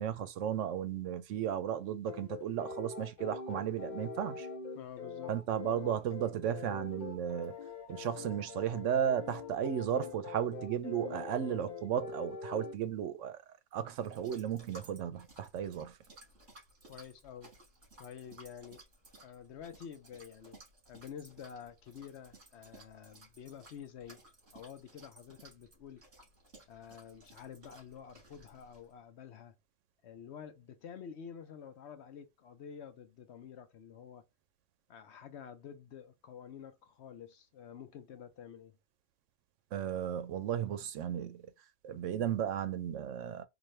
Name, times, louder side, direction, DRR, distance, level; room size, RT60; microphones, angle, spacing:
voice 1, 0.0-4.5 5.3-7.5 7.9-13.4 13.7-16.0 39.7-41.5 41.8-43.4, right 9 dB, 80° right, 1.0 m, -34 dB
sound 1, 2.1-12.7, left 4 dB, 45° left, 0.8 m, -44 dB
voice 2, 4.7-5.4 16.9-17.5 18.0-18.8 19.2-20.6 20.9-24.2 24.5-26.0 26.7-29.5 30.0-34.2 34.9-38.8, left 8 dB, 65° left, 0.9 m, -49 dB
sound 2, 14.0-28.9, right 2 dB, 55° right, 2.2 m, -58 dB
4.0 x 2.6 x 3.2 m
omnidirectional pair, 1.3 m